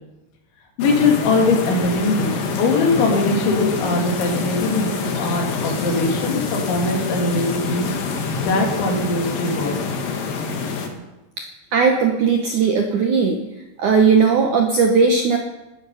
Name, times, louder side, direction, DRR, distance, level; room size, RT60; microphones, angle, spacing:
voice 1, 0.8-7.9 8.4-9.8, left 3 dB, 85° left, 1 dB, 5.1 m, -21 dB
sound 1, 0.8-10.9, left 5 dB, 60° left, 3.1 m, -26 dB
voice 2, 11.7-13.4 13.8-15.4, right 5 dB, 75° right, 3 dB, 1.8 m, -17 dB
18.0 x 13.5 x 5.6 m, 1.0 s
omnidirectional pair, 5.2 m